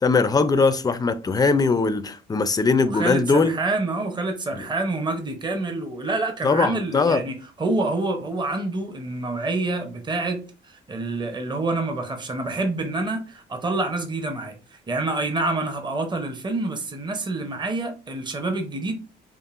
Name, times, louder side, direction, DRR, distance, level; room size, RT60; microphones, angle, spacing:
voice 1, 0.0-3.5 4.5-4.6 6.4-7.2, left 4 dB, 20° left, 0.4 m, -20 dB
voice 2, 2.8-10.4 10.7-19.0, right 2 dB, 20° right, 0.8 m, -27 dB
5.2 x 2.5 x 2.5 m
cardioid pair, 90°, 20 cm